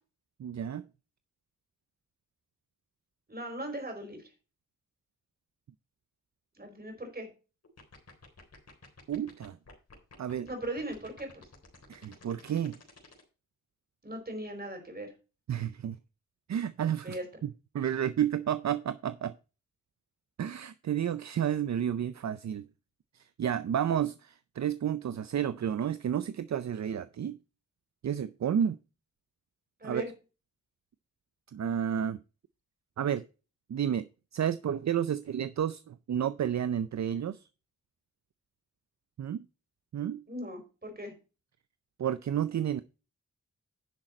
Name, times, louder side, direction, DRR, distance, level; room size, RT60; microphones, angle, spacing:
voice 1, 0.4-0.8 9.1-9.6 10.2-10.5 11.9-12.8 15.5-16.0 16.5-19.3 20.4-22.6 23.1-27.4 28.0-28.8 29.8-30.0 31.5-32.2 33.0-33.2 33.7-34.1 34.3-37.4 39.2-39.4 39.9-40.2 42.0-42.8, right 9 dB, 65° right, 0.5 m, -31 dB
voice 2, 3.3-4.3 6.6-7.3 10.5-11.5 14.0-15.1 17.0-17.2 29.8-30.1 40.3-41.1, right 1 dB, 30° right, 4.4 m, -38 dB
sound 1, 7.6-13.2, left 4 dB, 55° left, 3.7 m, -52 dB
10.5 x 6.4 x 4.2 m
wide cardioid pair, 115°, 30 cm